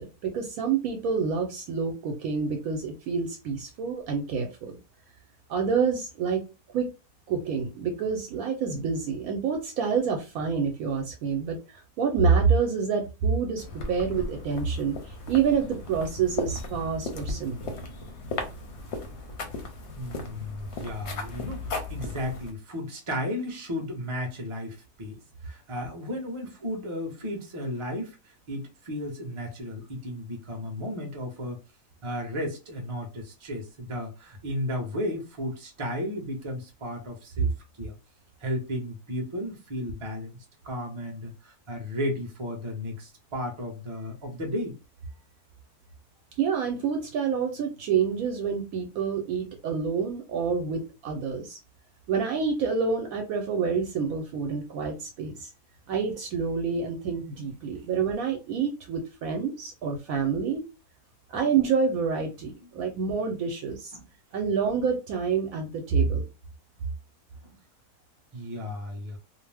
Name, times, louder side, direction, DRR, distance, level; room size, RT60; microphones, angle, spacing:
voice 1, 0.0-4.8 5.5-6.4 6.7-6.9 7.3-17.7 46.4-51.6 52.1-55.5 55.9-60.7 61.3-64.0 64.3-66.3, right 6 dB, 70° right, 1.0 m, -27 dB
sound 1, 13.6-22.5, left 2 dB, 60° left, 0.7 m, -36 dB
voice 2, 20.0-28.2 28.5-31.6 32.0-37.5 37.8-37.9 38.4-40.4 40.6-44.7 57.7-57.8 61.3-61.5 62.6-62.7 63.9-64.0 67.4-67.5 68.3-69.2, left 1 dB, 30° right, 0.6 m, -34 dB
2.6 x 2.0 x 3.3 m
omnidirectional pair, 1.6 m